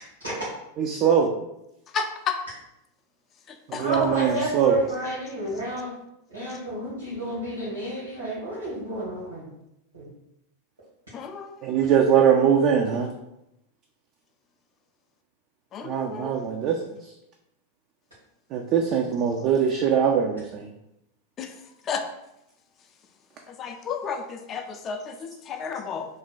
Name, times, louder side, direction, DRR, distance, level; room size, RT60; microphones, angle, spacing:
voice 1, 0.8-1.3 3.7-4.7 11.6-13.1 15.8-16.8 18.5-20.6, right 8 dB, 40° right, 2 dB, 0.3 m, -21 dB
voice 2, 1.9-2.4 3.5-3.8 11.1-11.8 15.7-16.3 21.4-21.5 21.8-22.1 23.5-26.1, left 6 dB, 30° left, 6 dB, 0.4 m, -32 dB
voice 3, 3.8-5.9 6.3-9.5 9.9-10.1, right 1 dB, 80° right, -9 dB, 1.4 m, -30 dB
3.2 x 2.2 x 4.2 m, 0.86 s
figure-of-eight pair, 90°, 0 cm